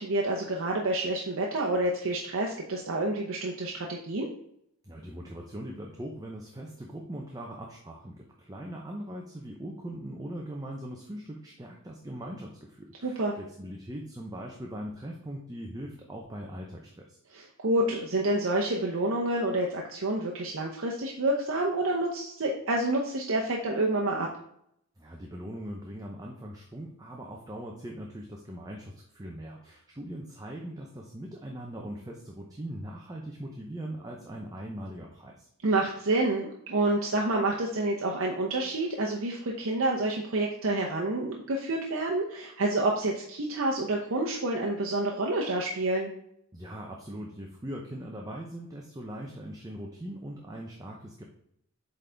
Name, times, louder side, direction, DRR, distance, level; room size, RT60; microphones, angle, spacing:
voice 1, 0.0-4.3 13.0-13.4 17.3-24.3 35.6-46.1, right 2 dB, 65° right, -1 dB, 0.8 m, -28 dB
voice 2, 4.8-17.2 25.0-35.5 46.5-51.2, right 1 dB, 15° right, 0 dB, 0.6 m, -40 dB
8.0 x 3.9 x 3.4 m, 0.73 s
head